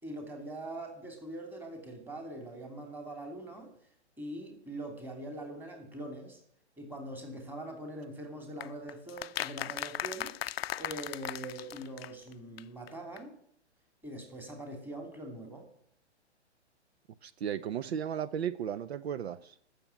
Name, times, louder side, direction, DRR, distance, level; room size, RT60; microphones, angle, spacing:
voice 1, 0.0-3.7 4.2-6.4 6.8-10.4 10.8-13.4 14.0-15.7, right 1 dB, 5° right, 3.0 m, -42 dB
sound 1, 8.6-12.3 12.6-12.7 12.9-13.0 13.2-13.3, left 12 dB, 60° left, 0.5 m, -38 dB
voice 2, 17.2-19.5, right 9 dB, 65° right, 0.8 m, -35 dB
14.0 x 6.9 x 9.1 m
hypercardioid pair, 125°, 34 cm